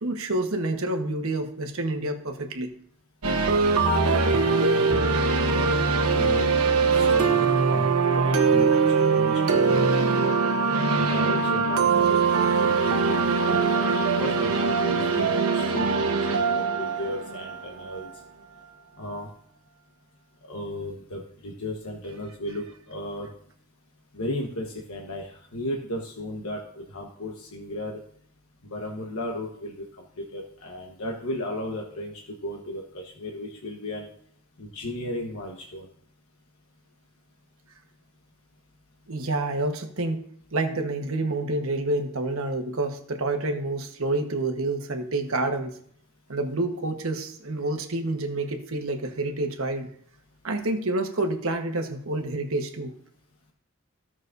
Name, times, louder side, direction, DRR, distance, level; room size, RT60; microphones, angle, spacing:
voice 1, 0.0-2.7 39.1-40.2 40.5-45.8 46.3-49.9 50.4-52.9, right 2 dB, 70° right, 4 dB, 1.2 m, -28 dB
sound 1, 3.2-18.1, right 4 dB, 90° right, 1.0 m, -22 dB
voice 2, 6.1-6.5 6.9-7.9 8.1-10.3 10.9-12.2 12.6-13.2 13.4-18.1 19.0-19.3 20.5-23.3 24.1-28.0 28.6-34.1 34.6-35.9, left 1 dB, 75° left, 1 dB, 1.2 m, -35 dB
15.5 x 6.2 x 2.6 m, 0.63 s
head